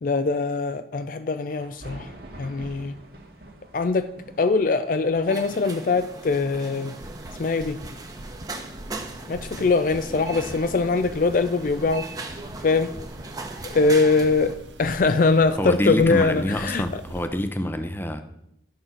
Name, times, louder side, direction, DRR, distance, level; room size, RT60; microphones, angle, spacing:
voice 1, 0.0-3.0 3.7-4.1 4.4-6.9 7.4-7.8 9.3-12.1 12.6-12.9 13.6-17.0, left 3 dB, 50° left, 11 dB, 0.4 m, -22 dB
sound 1, 1.5-15.7, right 1 dB, 55° right, 1.8 m, -48 dB
sound 2, 5.3-14.6, right 2 dB, 20° right, 1.0 m, -38 dB
sound 3, 6.9-17.3, right 1 dB, 90° right, 1.2 m, -43 dB
voice 2, 15.6-18.2, left 1 dB, 10° left, 8 dB, 0.7 m, -26 dB
11.5 x 6.4 x 5.7 m, 0.77 s
head